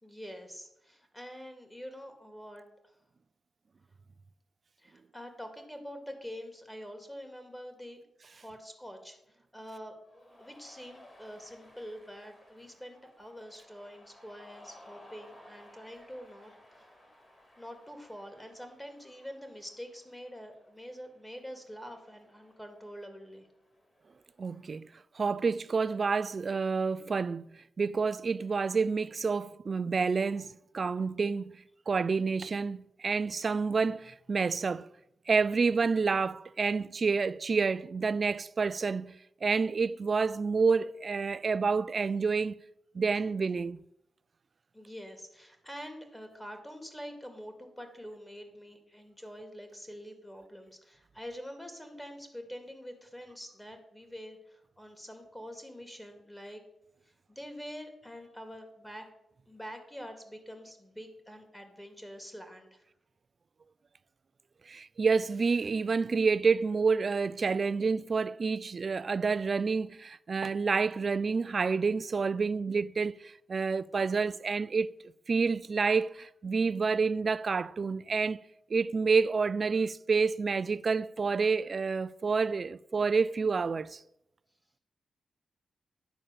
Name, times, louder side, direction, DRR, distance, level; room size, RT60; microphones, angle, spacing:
voice 1, 0.0-2.6 4.8-10.0 10.4-16.9 17.6-23.5 44.7-56.6 57.3-59.1 59.5-62.8, equal, 10° left, 1.9 m, -46 dB
Cheering, 10.0-24.9, left 1 dB, 30° left, 3.1 m, -58 dB
voice 2, 24.4-24.9 25.2-27.5 27.8-31.5 31.9-34.9 35.3-39.2 39.4-42.6 42.9-43.8 64.7-74.9 75.3-78.4 78.7-84.0, right 4 dB, 50° right, 0.3 m, -28 dB
10.0 x 4.2 x 6.6 m
cardioid pair, 65°, 0 cm